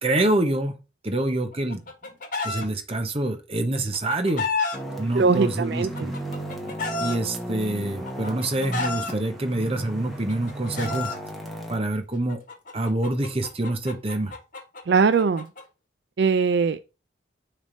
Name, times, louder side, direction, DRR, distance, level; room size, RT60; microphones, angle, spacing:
voice 1, 0.0-0.8 1.0-1.8 2.4-4.4 5.0-6.1 7.0-11.1 11.7-12.4 12.7-14.3, right 1 dB, 30° right, 1.0 m, -26 dB
Chicken rooster, 1.5-2.6 3.7-4.8 5.7-7.2 8.0-9.1 10.1-11.2 12.3-15.6, left 4 dB, 45° left, 1.4 m, -31 dB
sound 1, 4.7-11.8, right 1 dB, ahead, 1.2 m, -35 dB
voice 2, 5.1-6.1 14.9-15.5 16.2-16.8, right 5 dB, 60° right, 0.4 m, -21 dB
6.3 x 3.4 x 5.2 m
head